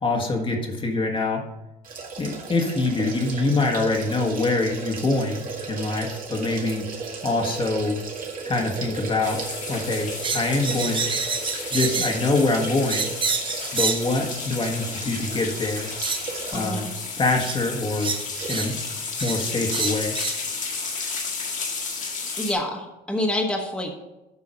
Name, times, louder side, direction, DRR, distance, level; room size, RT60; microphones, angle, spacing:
voice 1, 0.0-1.5 2.2-6.9 7.2-8.0 8.4-9.4 9.7-11.1 11.7-13.1 13.7-15.9 16.5-16.9 17.2-18.1 18.5-18.8 19.2-20.2, left 2 dB, 30° left, 1 dB, 1.5 m, -24 dB
sound 1, 1.8-16.8 17.2-17.3 18.3-18.8 19.1-19.2, right 4 dB, 55° right, 1.9 m, -36 dB
sound 2, 9.2-22.5, left 4 dB, 50° left, 1.9 m, -33 dB
sound 3, 10.2-12.2 12.9-14.1 15.2-15.3 16.0-16.2 17.4-17.6 18.0-18.7 19.2-19.4 19.7-20.4, right 5 dB, 30° right, 0.9 m, -27 dB
voice 2, 16.5-16.9 22.4-23.9, left 1 dB, 5° left, 0 dB, 1.4 m, -27 dB
8.6 x 5.5 x 5.2 m, 0.98 s
cardioid pair, 110°, 17 cm